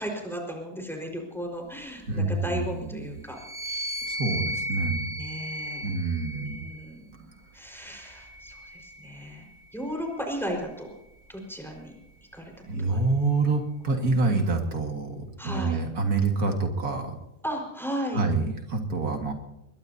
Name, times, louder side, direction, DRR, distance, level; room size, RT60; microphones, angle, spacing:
voice 1, 0.0-4.5 5.2-5.9 6.3-10.9 11.3-11.9 12.3-12.5 12.8-13.1 15.4-15.8 17.4-18.2, equal, ahead, 1 dB, 4.8 m, -36 dB
voice 2, 2.1-3.2 4.0-5.2 5.8-6.6 12.7-17.2 18.1-19.3, right 3 dB, 75° right, 3 dB, 2.4 m, -27 dB
sound 1, 3.3-6.9 7.7-9.3, equal, 25° right, 2.9 m, -35 dB
22.0 x 21.5 x 2.8 m, 0.90 s
omnidirectional pair, 1.6 m